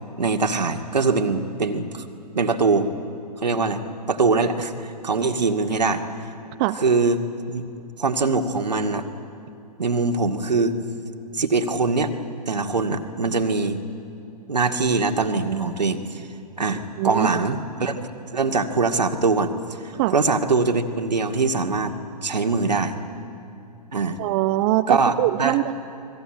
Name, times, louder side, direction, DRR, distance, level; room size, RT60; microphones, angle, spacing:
voice 1, 0.2-2.0 2.3-2.9 3.4-3.8 4.1-6.0 6.8-7.2 7.5-7.6 8.0-9.1 9.8-10.8 11.3-12.1 12.5-13.8 14.5-16.2 16.6-18.0 18.3-19.5 20.1-22.0 22.2-22.9 23.9-24.2 24.9-25.1 25.4-25.6, right 4 dB, 80° right, 5 dB, 2.2 m, -22 dB
voice 2, 17.0-17.3 20.0-20.1 24.2-25.7, right 16 dB, 35° right, 8 dB, 0.8 m, -22 dB
30.0 x 22.0 x 8.9 m, 2.8 s
figure-of-eight pair, 115°, 21 cm